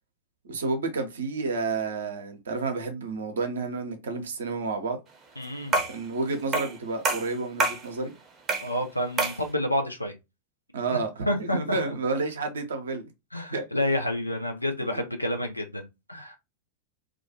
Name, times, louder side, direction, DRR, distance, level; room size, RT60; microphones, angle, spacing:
voice 1, 0.4-5.0 5.9-8.1 10.7-13.0 13.5-13.6 14.9-15.0, right 3 dB, 65° right, 0.6 m, -30 dB
voice 2, 5.4-5.7 8.6-10.2 10.9-11.0 11.3-12.0 13.3-16.4, left 1 dB, 85° left, 0.4 m, -29 dB
sound 1, 5.7-6.0 6.5-6.8 7.0-7.9 8.5-8.7 9.2-9.4, right 3 dB, 25° right, 0.7 m, -26 dB
2.4 x 2.3 x 2.7 m
figure-of-eight pair, 90°, 0 cm